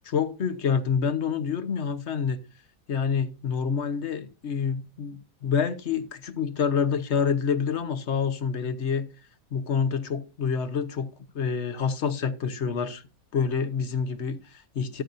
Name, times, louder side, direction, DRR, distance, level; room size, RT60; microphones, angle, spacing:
voice 1, 0.0-2.4 2.9-9.1 9.5-11.1 11.3-13.0 13.3-15.0, left 6 dB, 55° left, 1.3 m, -27 dB
14.0 x 12.0 x 2.7 m
omnidirectional pair, 1.4 m